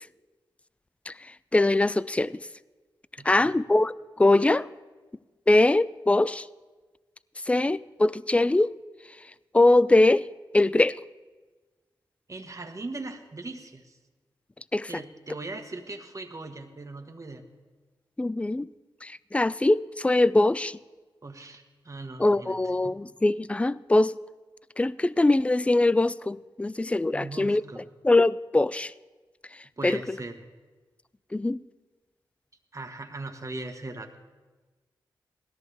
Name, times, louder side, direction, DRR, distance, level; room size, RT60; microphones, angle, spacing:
voice 1, 1.5-2.4 3.2-4.7 5.5-6.5 7.5-8.7 9.5-10.3 10.5-11.0 14.7-14.9 18.2-18.7 19.0-20.8 22.2-24.2 24.8-27.6 28.0-28.9 29.8-30.2 31.3-31.6, left 2 dB, 15° left, 0.4 m, -22 dB
voice 2, 3.2-3.5 12.3-14.0 14.9-17.4 21.2-22.6 22.8-23.0 27.1-27.8 29.8-30.4 32.7-34.2, right 2 dB, 35° right, 1.5 m, -39 dB
17.5 x 13.5 x 3.5 m
supercardioid pair, 40°, 9 cm